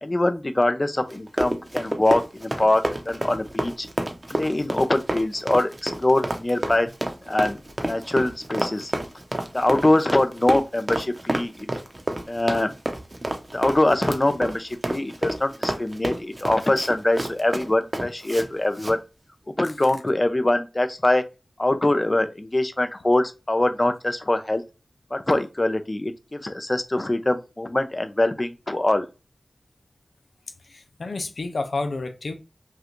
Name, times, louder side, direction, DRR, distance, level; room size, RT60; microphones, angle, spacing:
voice 1, 0.0-3.9 4.3-6.9 7.3-8.9 9.5-11.5 12.3-12.7 13.5-19.0 19.6-21.2 21.6-24.6 25.1-29.1, left 1 dB, 35° left, 0.7 m, -23 dB
Run, 1.1-18.5 18.8-19.0, right 1 dB, 40° right, 0.8 m, -29 dB
voice 2, 30.7-32.3, left 3 dB, 85° left, 0.6 m, -30 dB
5.4 x 2.4 x 3.1 m
cardioid pair, 45°, 0 cm